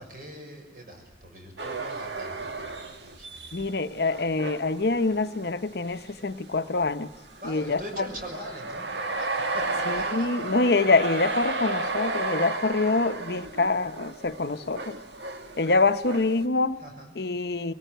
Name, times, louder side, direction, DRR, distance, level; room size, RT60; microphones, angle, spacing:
voice 1, 0.0-3.7 7.4-10.5 16.8-17.1, equal, 50° right, 6.4 m, -42 dB
sound 1, 1.6-5.7 6.2-6.3 7.1-16.4, right 3 dB, 90° right, 1.8 m, -33 dB
voice 2, 3.5-7.1 7.4-8.1 9.9-15.0 15.6-16.8 17.2-17.7, left 3 dB, 65° left, 0.8 m, -25 dB
22.5 x 19.0 x 9.2 m
head